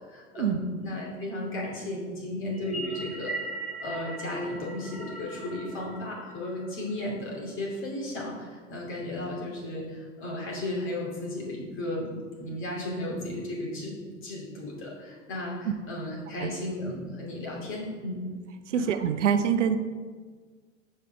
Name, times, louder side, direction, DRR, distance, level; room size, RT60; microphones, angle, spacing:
voice 1, 0.1-3.3 3.8-12.1 12.4-18.2 18.7-18.9, left 1 dB, 30° left, -3 dB, 2.5 m, -34 dB
sound 1, 2.5-7.1, right 2 dB, ahead, 1.0 m, -39 dB
voice 2, 18.7-19.8, right 8 dB, 70° right, 10 dB, 0.6 m, -25 dB
7.4 x 5.4 x 5.0 m, 1.5 s
figure-of-eight pair, 90°, 38 cm